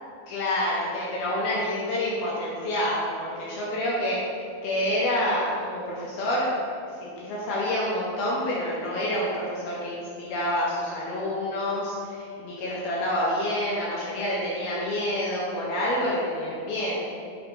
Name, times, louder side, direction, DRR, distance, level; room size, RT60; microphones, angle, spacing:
voice 1, 0.3-4.2 4.6-6.5 7.0-16.9, left 1 dB, 80° left, -5 dB, 2.2 m, -28 dB
7.0 x 3.5 x 5.2 m, 2.4 s
omnidirectional pair, 5.4 m